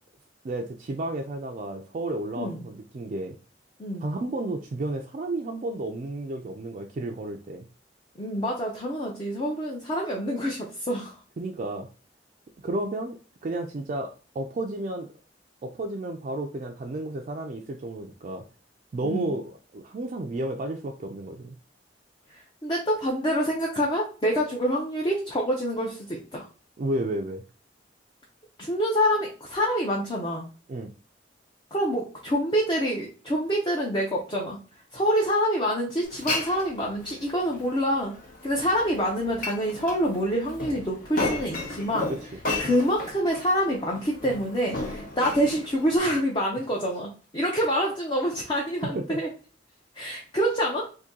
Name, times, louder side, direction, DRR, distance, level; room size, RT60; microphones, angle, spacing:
voice 1, 0.4-3.4 4.0-7.7 11.4-11.9 12.6-14.1 14.3-15.1 15.6-18.4 18.9-21.6 26.8-27.4 30.7-30.9 49.0-49.2, right 2 dB, 45° right, 2 dB, 0.3 m, -32 dB
voice 2, 8.1-11.2 19.0-19.3 22.3-26.5 28.6-30.5 31.7-34.6 34.9-38.2 38.4-42.1 42.6-49.3 49.9-50.9, equal, 25° left, -2 dB, 0.6 m, -26 dB
Glass, 36.1-46.0, left 2 dB, 50° left, 0.9 m, -34 dB
2.8 x 2.6 x 3.7 m, 0.37 s
head